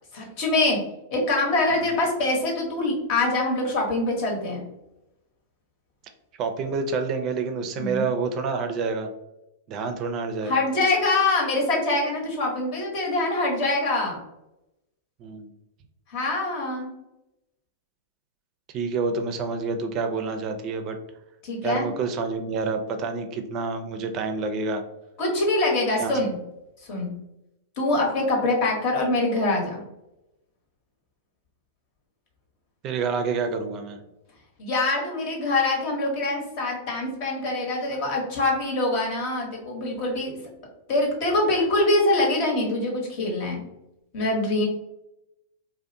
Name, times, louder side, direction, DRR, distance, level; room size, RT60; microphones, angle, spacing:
voice 1, 0.1-0.8 1.1-4.6 7.8-8.1 10.4-14.2 16.1-16.9 21.4-21.9 25.2-26.3 26.9-27.1 27.8-29.8 34.6-40.3 40.9-43.6 44.1-44.7, left 2 dB, 50° left, -1 dB, 1.0 m, -24 dB
voice 2, 6.4-9.1 9.7-10.6 15.2-15.5 18.7-21.0 21.6-24.8 26.0-26.1 32.8-34.0, right 4 dB, 40° right, 6 dB, 0.4 m, -28 dB
2.5 x 2.0 x 2.6 m, 0.91 s
hypercardioid pair, 105°, 0 cm